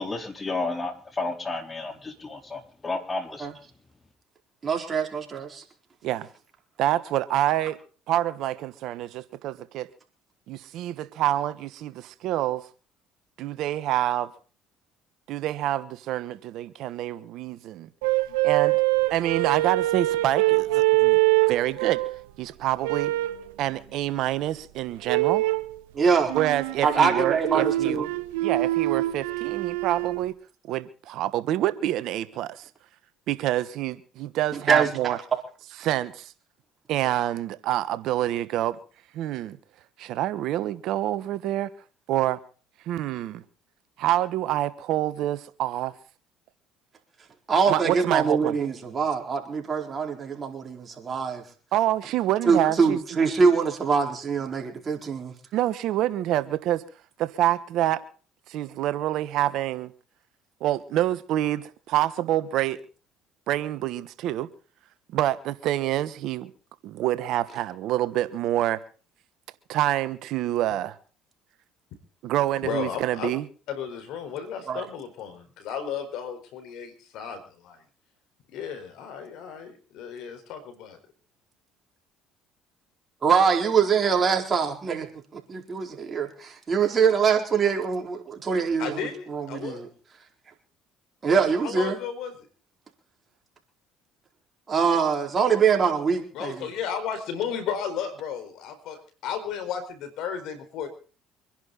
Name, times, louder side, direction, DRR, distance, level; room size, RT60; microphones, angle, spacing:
voice 1, 0.0-3.5, left 3 dB, 25° left, 3.9 m, -32 dB
voice 2, 4.6-5.6 25.9-26.3 26.8-28.1 34.5-34.9 35.3-35.4 47.5-51.4 52.5-55.3 74.7-74.8 83.2-85.1 85.3-88.9 89.3-89.9 91.2-92.0 94.7-96.7, right 6 dB, 35° right, 4.3 m, -23 dB
voice 3, 6.8-7.8 8.1-9.9 10.5-12.7 13.4-14.3 15.3-17.9 18.4-18.8 19.1-21.2 21.5-22.0 22.4-23.1 23.6-25.4 26.3-28.1 28.4-30.3 30.6-32.7 33.3-35.2 35.8-36.3 36.9-38.8 39.1-39.6 40.0-41.7 42.1-42.4 42.8-43.4 44.0-45.9 47.7-48.6 51.7-53.0 55.5-56.8 57.2-58.0 58.5-59.9 60.6-62.8 63.5-64.5 65.1-66.5 66.8-68.8 69.7-71.0 72.2-73.4, right 13 dB, 70° right, 1.2 m, -27 dB
sound 1, 18.0-22.2 22.8-23.4 25.0-25.7 26.3-30.2, right 19 dB, 90° right, 1.1 m, -24 dB
voice 4, 72.6-73.3 73.7-77.8 78.5-81.0 88.8-89.9 91.6-92.3 96.3-100.9, left 7 dB, 70° left, 4.4 m, -34 dB
25.5 x 11.0 x 4.1 m
supercardioid pair, 75°, 0 cm